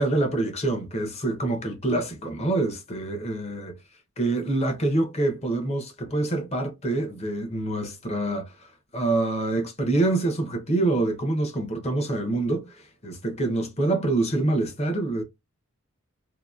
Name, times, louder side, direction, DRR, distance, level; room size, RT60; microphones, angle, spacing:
voice 1, 0.0-3.7 4.2-15.2, right 2 dB, 30° left, 0.8 m, -26 dB
2.8 x 2.6 x 2.4 m
head